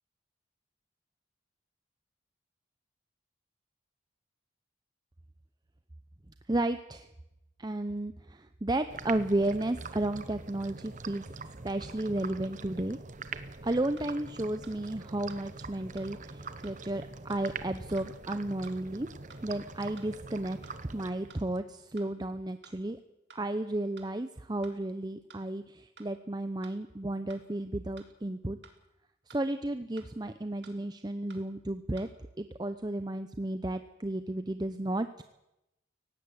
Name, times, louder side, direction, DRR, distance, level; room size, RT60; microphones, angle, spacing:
voice 1, 6.5-7.1 7.6-11.3 11.6-13.0 13.6-19.1 19.4-20.6 20.9-23.0 23.3-28.6 29.3-32.1 32.4-35.2, right 1 dB, 20° right, 10 dB, 0.7 m, -33 dB
sound 1, 8.9-21.6, right 4 dB, 40° right, 1.1 m, -44 dB
sound 2, 14.0-14.1 14.6-14.8 15.3-15.4 16.0-16.1 16.6-16.8 17.3-17.4 18.0-18.1 18.6-18.8 19.3-19.4 20.0-20.1 20.6-20.8 21.3-21.4 22.0-22.1 22.6-22.8 23.3-23.4 24.0-24.1 24.6-24.8 25.3-25.4 26.0-26.1 26.6-26.8 27.3-27.4 28.0-28.1 28.6-28.8 29.3-29.4 30.0-30.1 30.6-30.8 31.3-31.4 32.0-32.1, right 5 dB, 60° right, 3.0 m, -54 dB
17.5 x 15.5 x 9.7 m, 0.91 s
head